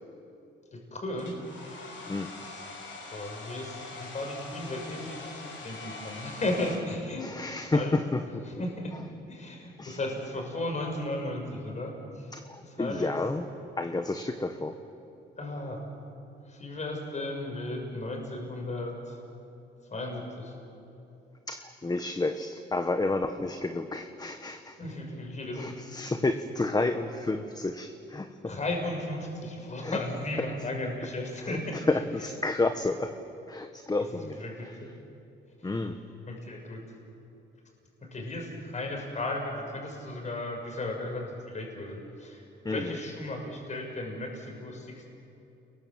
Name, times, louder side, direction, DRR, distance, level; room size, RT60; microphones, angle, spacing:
voice 1, 0.7-1.3 2.4-2.6 3.1-5.2 5.6-7.3 7.5-8.0 8.6-8.9 9.3-12.2 12.7-13.2 15.4-15.8 16.5-19.2 19.9-20.5 24.8-25.8 28.5-31.8 34.1-34.9 36.2-36.8 38.1-42.4 42.7-45.1, left 1 dB, 35° left, 2 dB, 6.4 m, -35 dB
Domestic sounds home sounds, 1.2-6.8, left 3 dB, 70° left, 6.3 m, -43 dB
voice 2, 7.2-8.4 8.9-9.0 9.8-10.0 12.3-13.5 13.8-14.7 21.5-24.8 25.5-28.5 29.8-30.0 31.4-33.1 33.5-34.8 35.6-35.9 42.6-43.0, left 2 dB, 20° left, 7 dB, 1.3 m, -30 dB
30.0 x 22.0 x 7.7 m, 2.8 s
cardioid pair, 90°, 20 cm